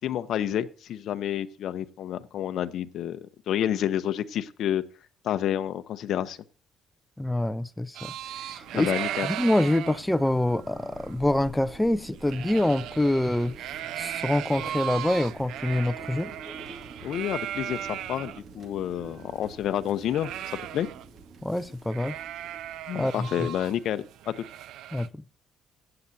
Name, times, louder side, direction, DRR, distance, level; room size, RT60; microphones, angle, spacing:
voice 1, 0.0-4.8 5.2-6.4 8.7-9.3 17.0-20.9 22.9-24.4, left 10 dB, 60° left, 0.7 m, -29 dB
voice 2, 7.2-8.9 9.2-13.6 14.0-16.3 21.4-22.2 22.9-23.5 24.9-25.2, left 1 dB, 5° left, 0.4 m, -26 dB
sound 1, 7.9-18.4 18.8-18.9 19.1-21.2 21.5-21.6 21.9-25.1, right 11 dB, 70° right, 0.4 m, -37 dB
sound 2, 8.2-23.2, right 3 dB, 35° right, 2.0 m, -48 dB
15.5 x 8.8 x 2.7 m
cardioid pair, 150°, 0 cm